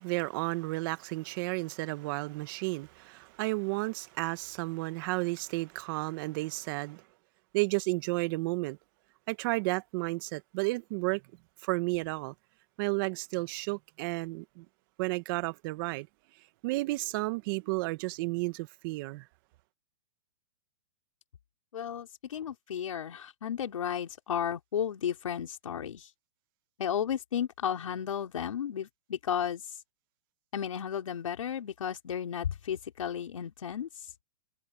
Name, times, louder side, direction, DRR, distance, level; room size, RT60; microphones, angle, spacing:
voice 1, 0.0-7.0 7.5-8.8 9.3-11.2 11.6-12.3 12.8-14.6 15.0-16.1 16.6-19.2, right 23 dB, 40° right, 1.4 m, -32 dB
voice 2, 21.7-26.1 26.8-29.6 30.5-33.9, left 9 dB, 80° left, 4.7 m, -33 dB
hypercardioid pair, 140°, 17 cm